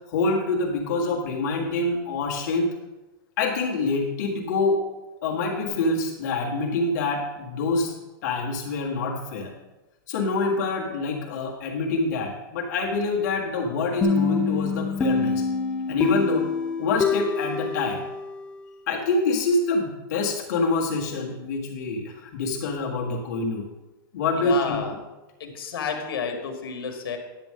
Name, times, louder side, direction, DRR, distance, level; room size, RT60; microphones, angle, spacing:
voice 1, 0.1-2.7 3.4-4.8 5.2-7.9 8.2-9.5 10.1-15.4 15.9-16.5 16.8-18.1 18.9-23.6 24.1-24.9, left 3 dB, 45° left, -2 dB, 1.7 m, -26 dB
sound 1, 14.0-18.7, left 5 dB, 5° left, 0.5 m, -26 dB
voice 2, 24.4-24.9 25.4-27.2, left 6 dB, 75° left, 3 dB, 1.7 m, -30 dB
10.0 x 7.8 x 3.7 m, 1.1 s
supercardioid pair, 175°, 12 cm